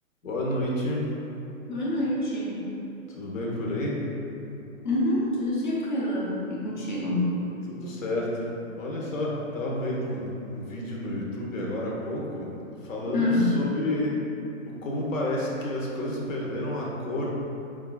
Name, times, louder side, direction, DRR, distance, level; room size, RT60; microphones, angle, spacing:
voice 1, 0.2-1.1 3.2-4.0 7.7-8.4 8.8-14.2 14.6-17.3, left 1 dB, 65° left, -3 dB, 0.8 m, -30 dB
voice 2, 1.7-2.7 4.8-7.4 13.1-13.6, left 1 dB, 35° left, -5 dB, 0.5 m, -26 dB
4.7 x 2.3 x 2.3 m, 2.9 s
hypercardioid pair, 165°, 42 cm